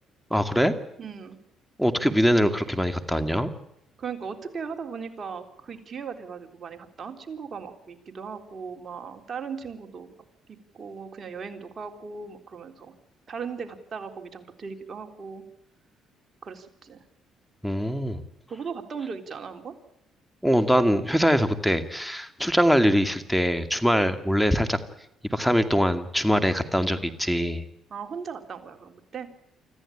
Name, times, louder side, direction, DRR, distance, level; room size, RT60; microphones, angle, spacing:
voice 1, 0.3-0.7 1.8-3.5 17.6-18.2 20.4-24.8 25.3-27.6, equal, ahead, 10 dB, 2.3 m, -23 dB
voice 2, 1.0-1.4 4.0-10.1 10.7-12.9 13.3-15.4 16.4-17.0 18.5-19.8 27.9-29.3, right 5 dB, 45° right, 5 dB, 3.7 m, -37 dB
25.5 x 14.5 x 8.7 m, 0.81 s
cardioid pair, 80°, 0 cm